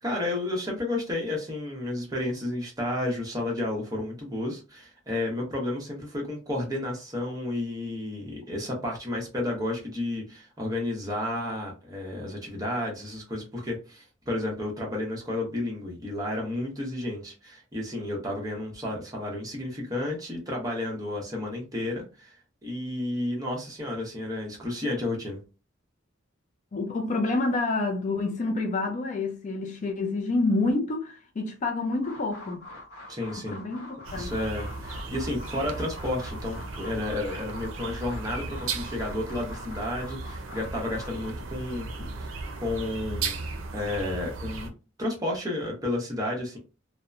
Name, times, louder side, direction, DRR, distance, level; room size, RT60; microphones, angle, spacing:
voice 1, 0.0-22.3 22.6-25.4 33.1-33.5 34.2-41.9 42.2-43.4 43.7-44.7 45.0-46.6, left 1 dB, 20° right, 0.9 m, -32 dB
voice 2, 26.7-32.6 33.4-34.3 42.0-42.1, left 2 dB, 40° left, 0.4 m, -28 dB
sound 1, 31.9-41.3, left 1 dB, 85° left, 1.0 m, -45 dB
sound 2, 34.0-44.7, right 3 dB, 90° right, 0.5 m, -36 dB
2.8 x 2.1 x 2.4 m
head